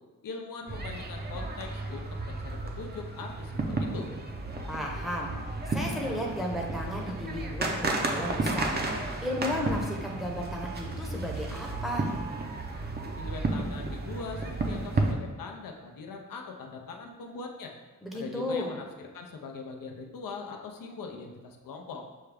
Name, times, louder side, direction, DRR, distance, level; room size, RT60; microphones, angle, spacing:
voice 1, 0.2-4.1 13.2-17.7 18.1-22.1, left 4 dB, 75° left, 2 dB, 0.6 m, -41 dB
sound 1, 0.7-15.1, right 2 dB, 30° right, 0.5 m, -33 dB
voice 2, 4.7-5.3 5.6-8.8 9.2-12.0 18.0-18.7, left 1 dB, ahead, -1 dB, 0.7 m, -34 dB
6.3 x 2.3 x 3.3 m, 1.3 s
cardioid pair, 90°, 34 cm